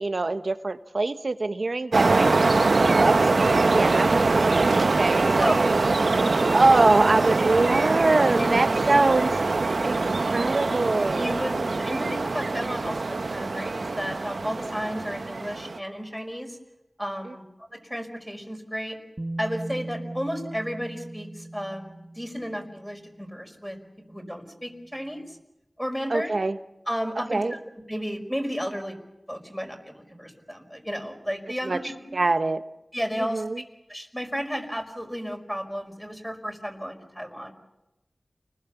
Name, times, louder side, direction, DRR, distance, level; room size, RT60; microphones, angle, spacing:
voice 1, 0.0-2.3 2.8-5.8 6.5-9.4 9.8-11.4 17.3-17.4 26.1-26.6 27.3-27.5 31.6-31.8 32.1-32.6 33.2-33.6, right 3 dB, 70° right, 10 dB, 1.2 m, -24 dB
sound 1, 1.9-15.8, right 3 dB, 90° right, 1.0 m, -23 dB
voice 2, 5.9-6.5 8.3-9.0 11.2-16.6 17.0-17.4 17.7-19.0 19.4-23.8 24.1-25.4 25.8-26.4 26.9-27.6 27.9-29.0 29.3-32.2 32.9-33.4 33.9-37.5, equal, ahead, 5 dB, 5.2 m, -33 dB
Bass guitar, 19.2-23.1 24.2-24.3, right 2 dB, 35° right, 1.3 m, -38 dB
30.0 x 20.0 x 7.1 m, 0.93 s
wide cardioid pair, 45°, 0 cm